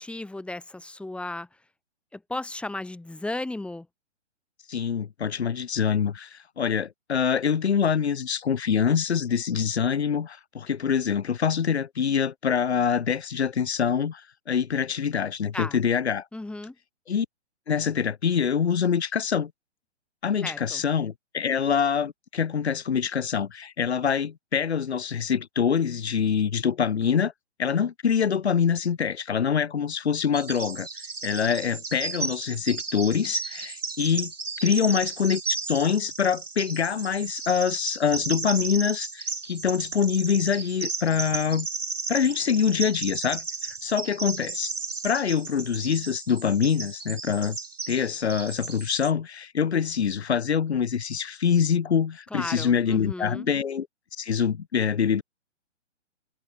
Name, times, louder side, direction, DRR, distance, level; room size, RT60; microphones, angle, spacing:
voice 1, 0.0-1.5 2.1-3.9 15.5-15.8 16.3-16.8 20.4-20.8 52.3-53.5, left 2 dB, 5° left, 5.2 m, -35 dB
voice 2, 4.7-14.2 14.5-16.2 17.1-17.3 17.7-19.5 20.2-27.3 27.6-30.9 31.2-34.3 34.6-35.4 35.7-41.7 42.1-43.4 43.8-44.7 45.0-47.6 47.9-53.9 54.2-55.2, left 7 dB, 60° left, 3.8 m, -25 dB
Bird vocalization bird call bird song, 30.3-49.1, right 4 dB, 85° right, 1.6 m, -34 dB
figure-of-eight pair, 125°, 36 cm